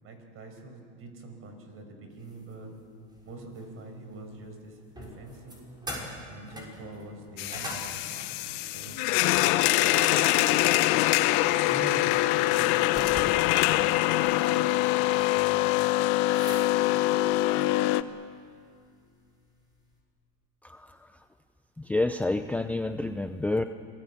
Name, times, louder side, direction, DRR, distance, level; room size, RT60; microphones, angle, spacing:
voice 1, 0.0-2.7 3.2-5.7 6.3-9.1 11.7-14.1 15.0-16.1, right 2 dB, 40° right, 6 dB, 5.5 m, -44 dB
sound 1, 2.1-3.8 4.1-20.0, equal, 10° right, 6.4 m, -45 dB
sound 2, 7.4-18.0, left 16 dB, 60° left, 1.1 m, -24 dB
voice 2, 21.8-23.6, left 2 dB, 5° left, 8 dB, 0.6 m, -28 dB
27.5 x 19.5 x 8.5 m, 2.2 s
supercardioid pair, 125°, 35 cm